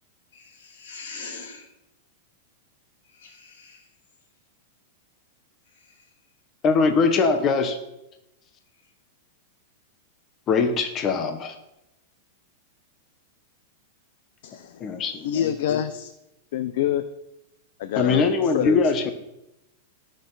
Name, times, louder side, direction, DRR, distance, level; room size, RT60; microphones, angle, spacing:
voice 1, 0.3-1.7 3.1-3.8, left 4 dB, 80° left, 0 dB, 3.3 m, -41 dB
voice 2, 6.6-7.8 10.5-11.5 14.8-15.8 18.0-19.1, left 4 dB, 30° left, 6 dB, 1.2 m, -22 dB
voice 3, 14.4-16.1 16.5-17.0 17.8-19.1, left 10 dB, 65° left, 10 dB, 0.7 m, -27 dB
17.5 x 6.6 x 4.0 m, 0.89 s
hypercardioid pair, 135°, 0 cm